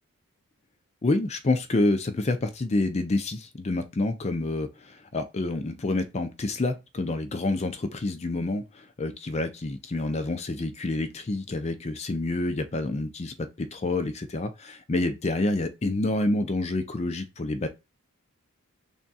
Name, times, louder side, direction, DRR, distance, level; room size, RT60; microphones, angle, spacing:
voice 1, 1.0-17.7, left 2 dB, 30° left, 0.5 m, -28 dB
3.5 x 2.4 x 4.0 m
head